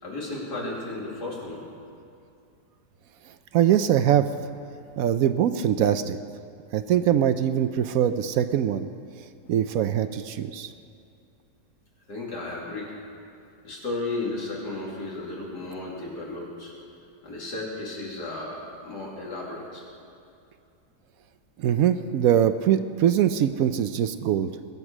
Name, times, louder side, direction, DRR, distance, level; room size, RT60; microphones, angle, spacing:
voice 1, 0.0-1.6 12.1-12.9 13.6-16.7 17.2-19.8, left 2 dB, 85° left, -3 dB, 3.3 m, -34 dB
voice 2, 3.5-4.3 5.0-6.2 6.7-8.9 9.5-10.7 21.6-24.5, right 10 dB, 70° right, 11 dB, 1.0 m, -22 dB
20.5 x 8.1 x 6.1 m, 2.5 s
omnidirectional pair, 1.7 m